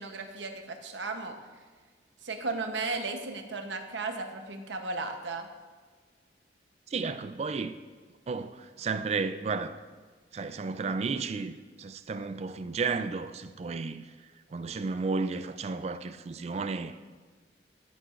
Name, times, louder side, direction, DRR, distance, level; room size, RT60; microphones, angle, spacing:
voice 1, 0.0-1.4 2.2-5.5, right 3 dB, 85° right, 0.9 m, -35 dB
voice 2, 6.9-7.8 8.3-9.8 10.3-14.1 14.5-17.0, right 4 dB, 35° right, 0.3 m, -33 dB
13.5 x 6.8 x 2.5 m
head